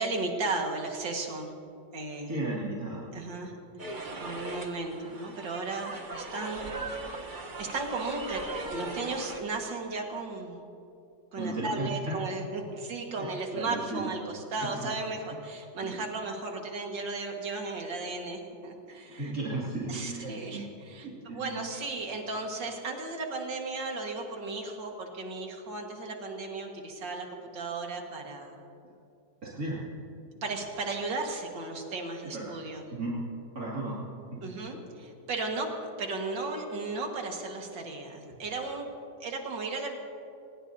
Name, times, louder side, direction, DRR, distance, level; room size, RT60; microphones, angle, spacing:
voice 1, 0.0-1.5 1.9-2.4 3.1-3.5 3.8-3.9 4.2-6.7 7.6-8.4 8.7-10.6 11.3-19.3 19.9-28.6 30.4-32.9 34.4-35.7 36.0-38.9 39.2-39.9, right 3 dB, 90° right, 2 dB, 2.4 m, -35 dB
voice 2, 2.3-3.1 11.4-12.2 13.2-14.1 14.6-14.9 15.8-16.0 19.2-20.7 21.0-21.5 28.8-28.9 29.4-29.8 32.2-32.5 32.9-33.2 33.5-34.0 34.3-34.5, right 2 dB, 55° right, -7 dB, 3.0 m, -35 dB
sound 1, 3.8-9.4, right 2 dB, 35° right, 1.0 m, -39 dB
24.0 x 20.5 x 2.7 m, 2.6 s
omnidirectional pair, 1.9 m